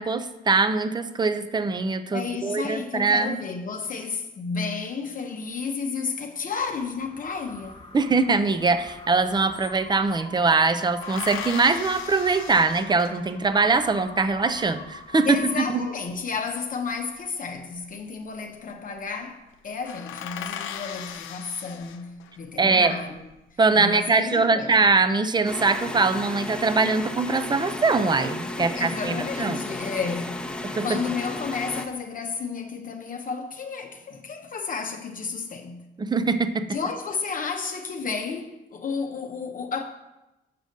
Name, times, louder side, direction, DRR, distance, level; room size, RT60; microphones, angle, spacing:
voice 1, 0.0-3.4 7.9-15.9 22.6-22.9 23.6-29.6 30.6-31.0 36.0-36.8, right 4 dB, 20° right, 0.6 m, -22 dB
voice 2, 2.1-7.8 15.2-23.2 23.5-24.8 28.6-35.9 36.7-39.8, left 5 dB, 45° left, 0.8 m, -32 dB
sound 1, 6.6-16.3, left 2 dB, 25° left, 1.4 m, -44 dB
sound 2, 8.9-9.0 9.2-10.3 11.0-13.5 16.2-17.2 18.3-18.7 19.0-19.2 19.5-19.6 19.8-22.4 23.0-23.6, left 9 dB, 90° left, 0.7 m, -38 dB
sound 3, 25.4-31.8, left 2 dB, 5° left, 1.0 m, -34 dB
6.7 x 4.9 x 6.5 m
cardioid pair, 90°, 20 cm